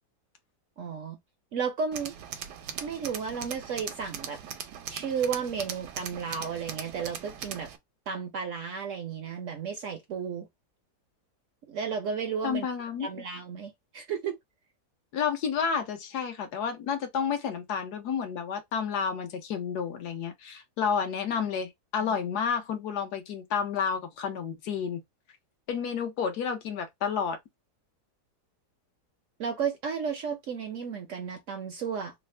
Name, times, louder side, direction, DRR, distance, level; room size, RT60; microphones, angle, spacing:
voice 1, 0.8-1.2 1.5-2.1 2.8-4.4 4.9-7.7 8.1-10.5 11.7-12.7 13.0-14.4 22.0-22.1 29.4-32.1, right 6 dB, 65° right, 0.8 m, -33 dB
Tools, 1.9-7.8, right 8 dB, 85° right, 1.2 m, -40 dB
voice 2, 12.4-13.1 15.1-25.0 25.7-27.4, left 7 dB, 75° left, 1.3 m, -30 dB
3.4 x 2.1 x 3.1 m
omnidirectional pair, 1.8 m